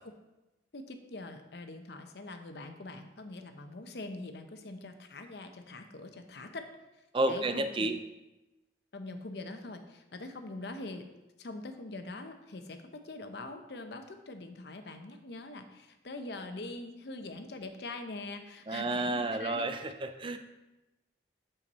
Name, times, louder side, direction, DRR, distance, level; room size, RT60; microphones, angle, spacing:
voice 1, 0.7-6.8 7.3-7.9 8.9-11.1 11.4-19.7, left 2 dB, 65° left, 7 dB, 0.7 m, -43 dB
voice 2, 7.1-8.0 18.7-20.4, right 2 dB, 30° right, 8 dB, 0.4 m, -31 dB
7.0 x 5.6 x 4.1 m, 1.0 s
head